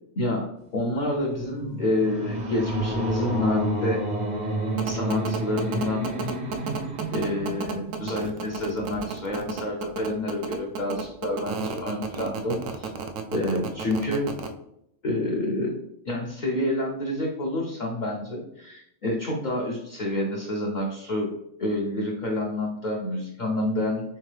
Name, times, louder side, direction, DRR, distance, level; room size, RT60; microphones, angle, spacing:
voice 1, 0.2-4.0 4.8-6.1 7.1-12.9 13.3-14.3 15.0-15.8 16.1-21.3 21.6-24.0, left 1 dB, 50° left, -2 dB, 0.6 m, -28 dB
sound 1, 1.0-8.4, right 1 dB, 45° right, 0.7 m, -30 dB
sound 2, 4.8-14.5, right 6 dB, 90° right, 1.0 m, -32 dB
3.6 x 3.5 x 3.2 m, 0.78 s
omnidirectional pair, 1.3 m